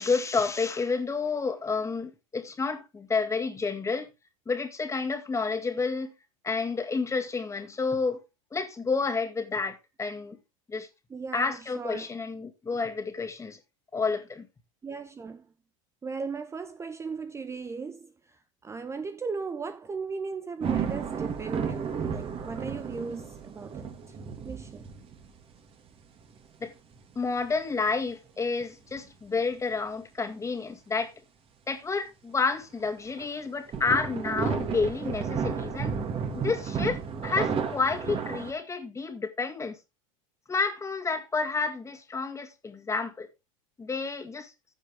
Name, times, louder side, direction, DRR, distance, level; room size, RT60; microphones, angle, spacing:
voice 1, 0.0-4.1 4.5-6.1 6.4-8.2 8.5-10.4 10.7-10.9 11.3-13.6 13.9-14.5 26.6-26.7 27.2-31.1 31.7-35.9 36.3-39.8 40.5-43.3 43.8-44.5, left 4 dB, 15° left, 2.1 m, -30 dB
voice 2, 11.1-12.1 14.8-15.5 16.0-24.2 24.4-24.9, right 4 dB, 15° right, 0.7 m, -37 dB
sound 1, 20.6-25.3 26.4-26.5 27.2-27.4 29.0-29.1 32.8-33.2 33.7-38.5, right 6 dB, 35° right, 2.1 m, -32 dB
15.0 x 5.3 x 3.5 m
hypercardioid pair, 100°, 17 cm